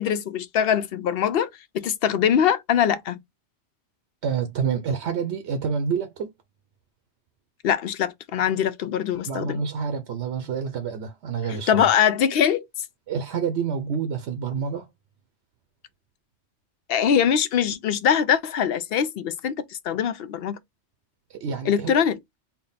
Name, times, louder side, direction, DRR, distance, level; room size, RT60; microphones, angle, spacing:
voice 1, 0.0-3.2 7.6-9.6 11.7-12.7 16.9-20.6 21.7-22.2, left 8 dB, 65° left, 0.7 m, -22 dB
voice 2, 4.2-6.3 9.3-11.9 13.1-14.9 21.3-22.0, right 6 dB, 80° right, 0.9 m, -28 dB
3.5 x 2.1 x 4.0 m
omnidirectional pair, 1.2 m